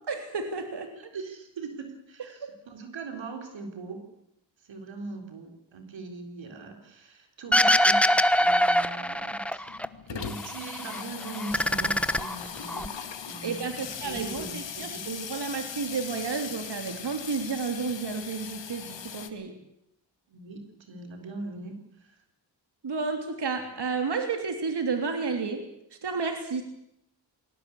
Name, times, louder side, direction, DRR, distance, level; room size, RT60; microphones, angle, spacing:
voice 1, 0.1-0.9 2.4-2.5 13.4-19.5 22.8-25.6 26.0-26.6, right 4 dB, 65° right, 5 dB, 3.3 m, -31 dB
voice 2, 1.0-4.1 4.6-9.8 10.1-12.9 13.3-15.0 20.3-22.2, right 3 dB, 90° right, 4 dB, 4.0 m, -41 dB
sound 1, 7.5-9.9 10.2-11.0 11.3-12.9, equal, 5° left, 1.0 m, -23 dB
Water tap faucet / Sink (filling or washing), 8.8-8.9 9.0-9.1 9.4-19.3, left 7 dB, 75° left, 2.0 m, -39 dB
21.0 x 18.5 x 8.5 m, 0.77 s
cardioid pair, 65°, 44 cm